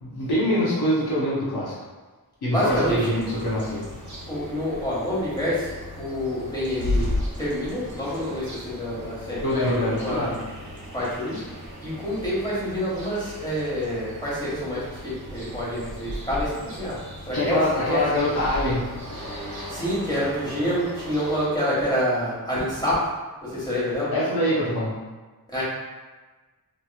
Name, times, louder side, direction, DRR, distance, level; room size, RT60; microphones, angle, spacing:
voice 1, 0.0-1.7 2.4-3.8 9.4-10.3 17.3-18.8 24.1-24.9, left 1 dB, 90° left, -8 dB, 0.8 m, -24 dB
voice 2, 2.5-3.0 4.2-7.1 7.4-10.3 10.9-11.4 11.8-17.0 17.3-18.0 19.7-23.0 23.4-24.1 25.5-25.6, equal, 10° left, -9 dB, 1.4 m, -27 dB
sound 1, 2.7-21.5, left 1 dB, 50° right, 1.0 m, -35 dB
3.0 x 2.9 x 2.3 m, 1.3 s
wide cardioid pair, 55°, 37 cm